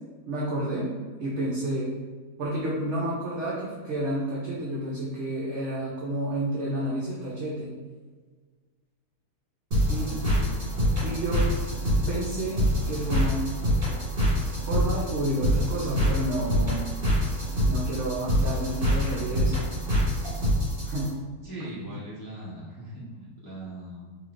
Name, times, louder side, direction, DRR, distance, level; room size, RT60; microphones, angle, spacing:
voice 1, 0.3-0.9 1.2-1.9 2.4-7.7 9.9-10.2 11.0-11.5 12.1-13.4 14.7-16.8 17.7-19.5 20.9-21.1 21.6-21.7, right 1 dB, 55° right, -5 dB, 0.8 m, -30 dB
sound 1, 9.7-21.1, equal, 35° right, 1.8 m, -25 dB
voice 2, 9.8-10.6 21.4-24.1, right 1 dB, 20° left, -8 dB, 0.5 m, -40 dB
4.7 x 2.8 x 2.5 m, 1.5 s
omnidirectional pair, 1.7 m